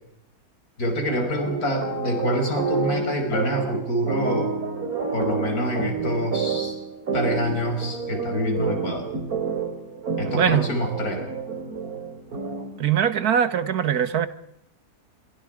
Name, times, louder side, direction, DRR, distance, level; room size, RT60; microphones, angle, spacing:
voice 1, 0.8-4.5 5.1-6.8 7.1-9.1 10.2-11.2, equal, 75° left, 5.7 m, -26 dB
sound 1, 1.1-12.8, right 4 dB, 75° right, 3.2 m, -29 dB
voice 2, 10.2-10.7 12.8-14.3, right 9 dB, 90° right, 1.8 m, -22 dB
26.0 x 24.5 x 5.1 m
omnidirectional pair, 1.6 m